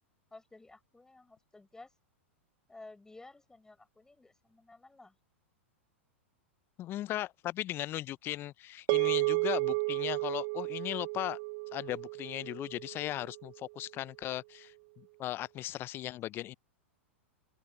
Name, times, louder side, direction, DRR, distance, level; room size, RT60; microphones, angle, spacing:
voice 1, 0.3-1.9 2.7-5.2, left 2 dB, 10° left, 6.5 m, -54 dB
voice 2, 6.8-11.4 11.7-16.6, left 14 dB, 35° left, 0.5 m, -37 dB
sound 1, 8.9-13.4, right 29 dB, 50° right, 0.5 m, -33 dB
open air
hypercardioid pair, 100°, 7 cm